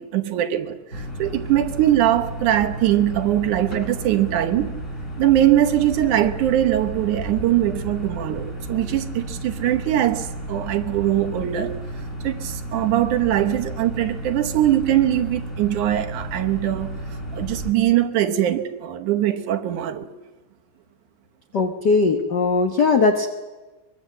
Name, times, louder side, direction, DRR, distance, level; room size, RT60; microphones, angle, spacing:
voice 1, 0.0-4.7 5.2-11.7 12.2-17.0 17.3-20.1, right 12 dB, 75° right, 6 dB, 2.5 m, -21 dB
sound 1, 0.9-17.7, right 1 dB, 25° left, 3.7 m, -33 dB
voice 2, 21.5-23.3, left 4 dB, 75° left, 5 dB, 0.9 m, -19 dB
23.5 x 22.0 x 7.6 m, 1.2 s
omnidirectional pair, 3.7 m